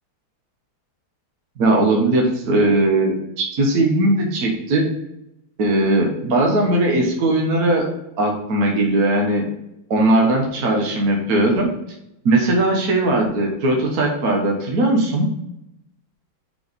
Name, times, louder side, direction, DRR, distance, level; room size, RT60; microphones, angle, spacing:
voice 1, 1.6-4.8 5.6-7.8 8.2-9.4 9.9-11.7 12.2-15.3, right 2 dB, 50° right, -1 dB, 1.4 m, -19 dB
5.5 x 4.2 x 5.0 m, 0.84 s
omnidirectional pair, 2.3 m